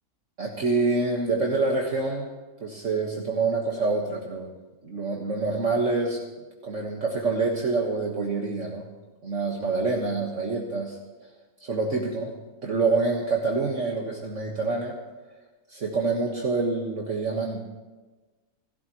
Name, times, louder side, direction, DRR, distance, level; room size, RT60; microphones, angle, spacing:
voice 1, 0.4-2.3 2.6-4.5 4.8-6.2 6.6-8.8 9.2-11.0 11.6-12.3 12.6-15.0 15.7-17.6, right 3 dB, 55° right, -1 dB, 1.8 m, -26 dB
29.0 x 13.0 x 3.1 m, 1.2 s
omnidirectional pair, 1.6 m